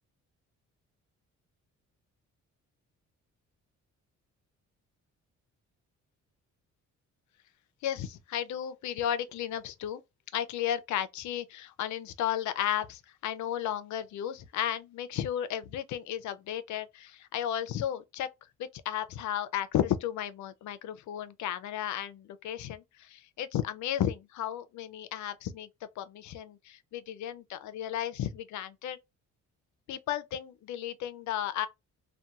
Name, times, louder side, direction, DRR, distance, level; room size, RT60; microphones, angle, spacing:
voice 1, 7.8-10.0 10.3-18.3 18.6-25.7 26.0-29.0 29.9-31.7, left 10 dB, 70° left, 0.5 m, -34 dB
2.7 x 2.2 x 2.3 m
cardioid pair, 90°, 30 cm